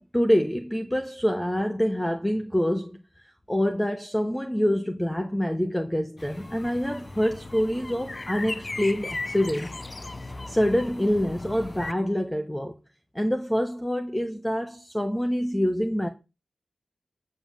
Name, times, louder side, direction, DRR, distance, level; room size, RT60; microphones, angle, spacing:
voice 1, 0.0-3.0 3.5-9.7 10.5-12.8 13.1-16.1, equal, 10° left, 1.4 m, -26 dB
sound 1, 6.2-11.9, left 2 dB, 30° left, 0.8 m, -37 dB
13.0 x 5.5 x 7.4 m
cardioid pair, 60°, 0 cm